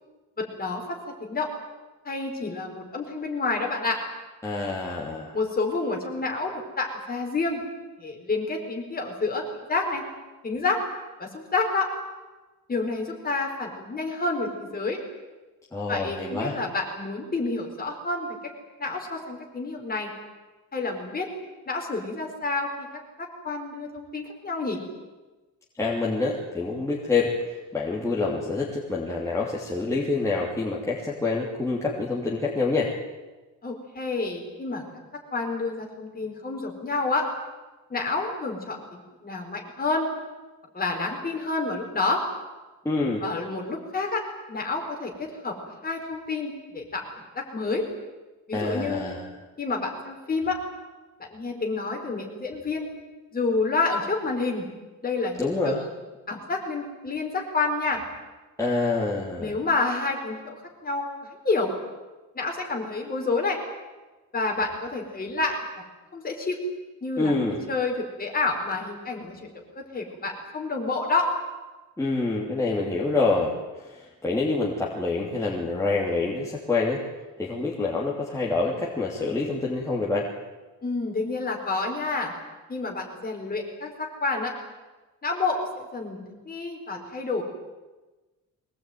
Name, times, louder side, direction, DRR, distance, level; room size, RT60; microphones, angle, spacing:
voice 1, 0.4-1.5 2.0-4.0 5.3-7.6 8.0-9.4 9.7-10.0 10.4-10.8 11.2-11.9 12.7-15.0 15.9-18.4 18.8-20.1 20.7-21.3 21.7-22.9 23.2-24.8 33.6-34.8 35.3-37.3 37.9-40.1 40.7-42.2 43.2-44.2 44.5-45.6 45.8-47.1 47.3-47.8 48.5-49.0 49.6-50.6 51.2-52.9 53.3-54.7 55.0-55.9 56.3-58.0 59.4-61.7 62.3-63.6 64.3-65.6 66.1-66.6 67.0-67.3 67.7-69.5 69.8-71.3 80.8-82.3 82.7-84.5 85.2-87.4, left 3 dB, 30° left, 1 dB, 4.5 m, -29 dB
voice 2, 4.4-5.4 15.7-16.6 25.8-32.9 42.8-43.2 48.5-49.3 55.4-55.8 58.6-59.5 67.2-67.6 72.0-77.0 77.4-80.3, left 3 dB, 10° left, -5 dB, 2.9 m, -27 dB
23.0 x 19.0 x 9.3 m, 1.2 s
wide cardioid pair, 175°, 32 cm